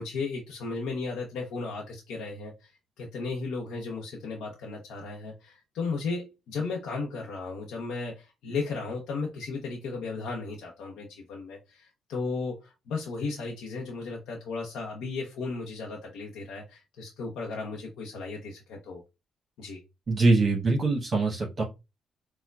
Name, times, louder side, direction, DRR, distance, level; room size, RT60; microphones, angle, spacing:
voice 1, 0.0-2.7 3.0-19.0 19.6-19.8, left 4 dB, 85° left, 0.7 m, -35 dB
voice 2, 20.1-21.6, right 3 dB, 45° right, 1.0 m, -23 dB
4.4 x 2.2 x 2.3 m
cardioid pair, 75°, 0 cm